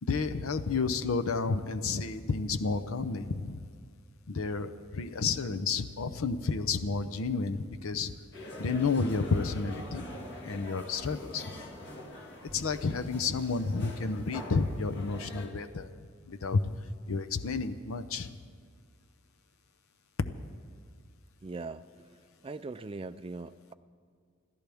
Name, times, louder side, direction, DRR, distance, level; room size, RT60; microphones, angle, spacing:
voice 1, 0.0-3.7 4.3-8.1 8.6-10.0 10.4-11.5 12.5-15.9 16.2-16.6 17.1-18.4, left 4 dB, 80° left, 10 dB, 0.7 m, -31 dB
sound 1, 8.3-15.5, left 1 dB, 55° left, 2.0 m, -44 dB
voice 2, 21.4-23.7, right 3 dB, 25° right, 12 dB, 0.3 m, -41 dB
27.5 x 13.5 x 3.5 m, 2.1 s
head